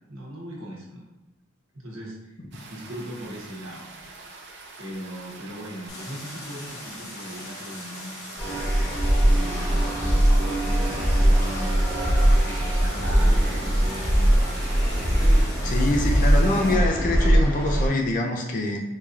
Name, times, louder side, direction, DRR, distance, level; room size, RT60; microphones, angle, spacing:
voice 1, 0.1-1.1 1.7-2.3 2.7-4.1 4.8-8.4 9.2-14.4, equal, 70° right, -4 dB, 1.0 m, -39 dB
sound 1, 2.5-15.5, right 3 dB, 55° right, 0.5 m, -43 dB
Stream, 5.9-16.7, left 2 dB, 80° left, 0.9 m, -41 dB
sound 2, 8.4-17.9, right 1 dB, 10° left, 0.8 m, -21 dB
voice 2, 15.6-18.8, left 2 dB, 35° left, 1 dB, 0.4 m, -25 dB
4.6 x 2.7 x 2.4 m, 1.0 s
head